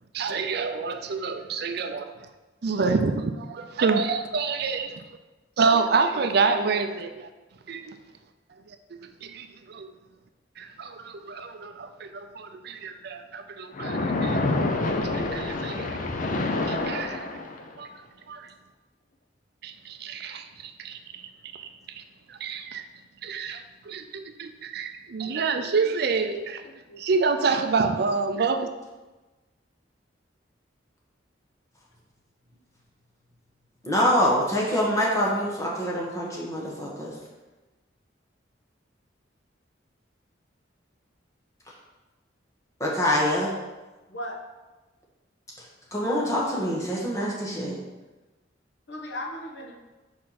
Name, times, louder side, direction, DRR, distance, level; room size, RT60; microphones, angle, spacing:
voice 1, 0.2-2.0 2.6-4.8 5.6-7.3 7.7-8.0 8.7-9.9 10.6-14.8 15.1-16.0 16.7-17.2 17.8-17.9 18.3-18.5 19.6-21.2 21.5-22.0 22.3-22.8 23.2-26.6 27.0-28.7, right 4 dB, 55° right, 8 dB, 0.4 m, -28 dB
Splash splatter, 13.7-17.8, left 2 dB, 45° left, 0.5 m, -27 dB
voice 2, 33.8-37.1 42.8-43.5 45.9-47.8, equal, 15° left, -4 dB, 1.4 m, -25 dB
voice 3, 48.9-49.7, left 1 dB, 65° left, 0 dB, 1.0 m, -36 dB
4.7 x 4.4 x 5.8 m, 1.2 s
head